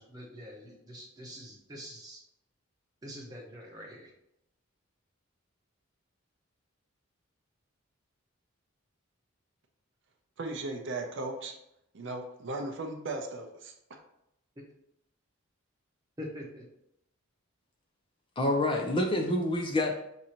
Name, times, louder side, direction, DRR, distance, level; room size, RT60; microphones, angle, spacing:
voice 1, 0.0-2.2 3.0-4.1 14.6-14.7 16.2-16.6, equal, 15° right, -1 dB, 0.8 m, -45 dB
voice 2, 10.4-11.5 11.9-13.7, right 2 dB, 55° right, 4 dB, 0.5 m, -36 dB
voice 3, 18.4-19.9, left 1 dB, 25° left, 2 dB, 0.4 m, -27 dB
6.1 x 2.7 x 2.9 m, 0.80 s
head